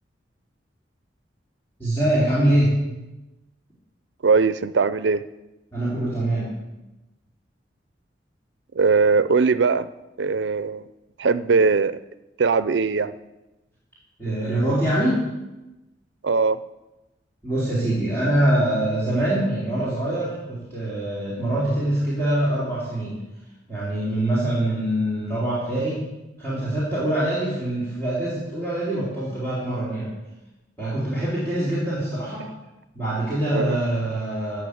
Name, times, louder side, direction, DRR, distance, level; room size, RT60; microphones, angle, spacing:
voice 1, 1.8-2.8 5.7-6.5 14.2-15.2 17.4-23.2 23.7-26.1 26.4-30.1 30.8-32.4 32.9-34.6, right 1 dB, 15° left, -10 dB, 4.3 m, -24 dB
voice 2, 4.2-5.2 8.8-9.9 10.2-10.8 11.2-12.0 12.4-13.1 16.2-16.6 33.5-33.8, right 4 dB, 85° right, 14 dB, 0.5 m, -20 dB
15.0 x 7.1 x 8.5 m, 1.0 s
head